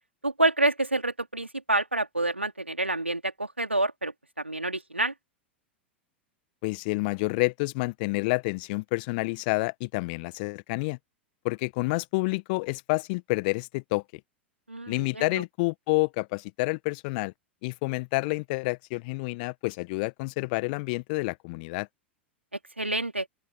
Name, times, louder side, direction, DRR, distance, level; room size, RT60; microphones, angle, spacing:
voice 1, 0.2-5.1 14.7-15.4 22.8-23.3, right 2 dB, 90° right, 3.5 m, -28 dB
voice 2, 6.6-11.0 11.4-14.0 14.9-17.3 17.6-21.9, left 27 dB, 50° left, 1.4 m, -29 dB
open air
figure-of-eight pair, 90°, 6 cm